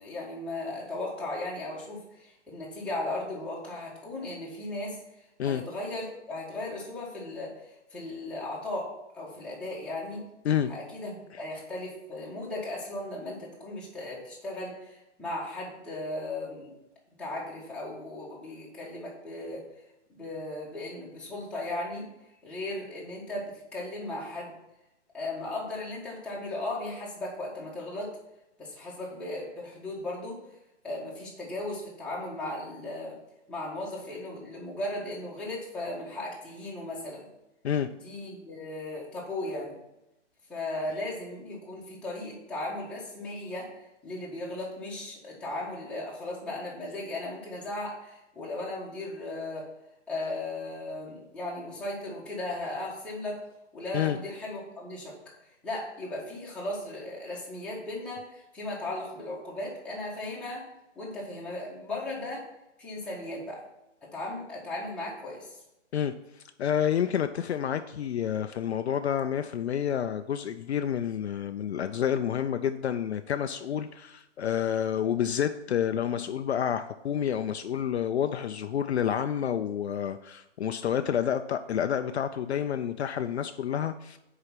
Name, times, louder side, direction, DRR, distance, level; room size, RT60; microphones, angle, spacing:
voice 1, 0.0-5.0 5.4-10.3 10.7-16.7 17.2-19.6 20.1-22.1 22.4-24.5 25.1-28.2 28.6-30.4 30.8-33.2 33.5-37.3 38.0-39.8 40.5-49.7 50.1-53.4 53.7-55.1 55.6-60.7 60.9-62.4 62.8-63.6 64.1-65.6, left 2 dB, 5° left, -6 dB, 1.6 m, -36 dB
voice 2, 66.6-84.2, left 9 dB, 60° left, 9 dB, 0.5 m, -29 dB
6.5 x 4.9 x 5.7 m, 0.90 s
hypercardioid pair, 140°, 36 cm